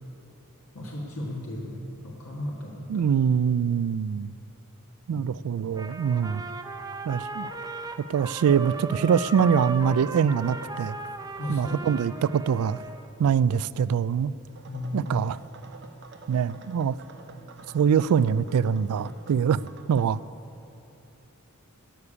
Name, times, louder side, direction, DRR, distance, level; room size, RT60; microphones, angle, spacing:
voice 1, 0.7-3.1 5.1-5.3 11.4-11.8 14.7-15.1 17.2-17.5, left 1 dB, 70° left, -3 dB, 1.6 m, -35 dB
voice 2, 2.9-4.3 5.1-6.4 7.1-7.5 8.1-11.0 11.5-12.8 13.2-14.3 14.9-15.4 16.3-17.0 17.7-19.6 19.9-20.2, right 7 dB, 80° right, 19 dB, 0.3 m, -24 dB
Trumpet, 5.7-13.1, right 3 dB, 15° right, 0.6 m, -37 dB
sound 1, 14.5-20.0, right 3 dB, 50° right, 0.7 m, -48 dB
13.0 x 6.8 x 9.9 m, 2.8 s
head